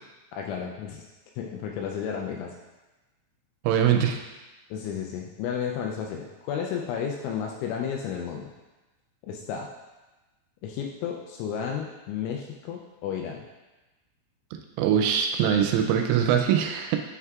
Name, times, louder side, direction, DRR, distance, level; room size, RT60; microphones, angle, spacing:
voice 1, 0.3-1.1 1.4-2.6 4.7-8.5 9.3-9.7 10.6-13.4, left 7 dB, 85° left, 0 dB, 2.8 m, -32 dB
voice 2, 3.6-4.2 14.8-17.0, right 8 dB, 85° right, 4 dB, 3.0 m, -22 dB
9.4 x 5.5 x 2.3 m, 1.1 s
omnidirectional pair, 5.9 m